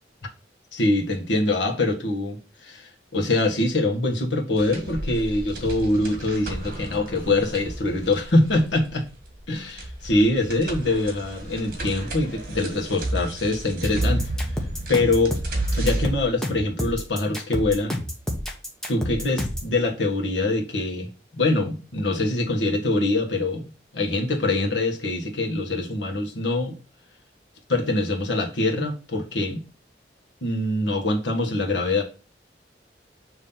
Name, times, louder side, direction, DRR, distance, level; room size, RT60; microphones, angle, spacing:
voice 1, 0.7-8.8 9.5-14.3 14.9-15.4 15.8-18.0 18.9-26.7 27.7-29.6 30.4-32.0, left 2 dB, 90° left, 1.5 m, -24 dB
sound 1, 4.6-16.0, right 1 dB, 50° right, 1.7 m, -31 dB
sound 2, 13.8-19.7, left 1 dB, 5° left, 1.0 m, -29 dB
7.2 x 3.1 x 5.5 m
head